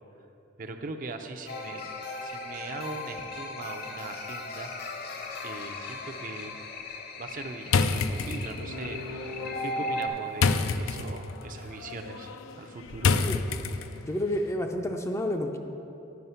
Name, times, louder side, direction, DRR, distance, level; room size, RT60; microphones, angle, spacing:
voice 1, 0.6-1.9 2.2-4.7 5.4-6.6 7.2-9.3 9.6-13.2, right 3 dB, 40° right, 5 dB, 0.5 m, -40 dB
sound 1, 1.5-10.1, left 2 dB, 50° left, 0.8 m, -37 dB
sound 2, 7.7-14.2, left 4 dB, 85° left, 0.4 m, -29 dB
voice 2, 13.2-13.8 14.1-15.6, left 1 dB, 15° left, 4 dB, 0.4 m, -31 dB
9.3 x 5.5 x 5.6 m, 2.9 s
head